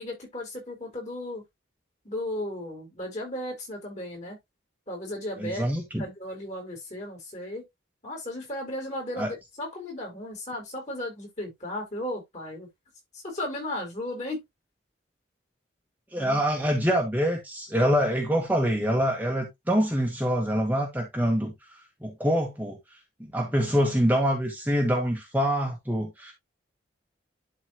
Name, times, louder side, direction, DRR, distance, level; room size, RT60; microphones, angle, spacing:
voice 1, 0.0-1.4 2.0-4.4 4.9-5.6 6.0-7.6 8.0-12.7 13.1-14.4 16.2-16.4, left 1 dB, 35° left, 4.2 m, -35 dB
voice 2, 5.4-6.0 9.2-9.3 16.1-26.3, equal, 10° right, 1.3 m, -25 dB
11.5 x 4.1 x 2.9 m
head